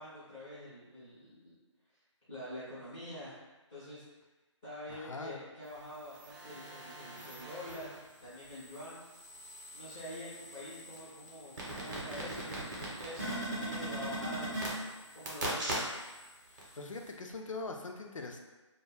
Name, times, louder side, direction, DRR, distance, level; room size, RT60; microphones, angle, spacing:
voice 1, 0.0-1.6 2.3-3.3 3.7-4.0 4.6-9.0 9.7-15.6, equal, 5° left, -14 dB, 0.3 m, -46 dB
voice 2, 4.9-5.4 16.5-18.4, left 3 dB, 85° left, 3 dB, 0.4 m, -42 dB
sound 1, 6.0-8.0 8.5-16.2 16.6-16.7, right 1 dB, 35° right, 0.7 m, -40 dB
2.2 x 2.2 x 3.1 m, 1.1 s
figure-of-eight pair, 155°, 16 cm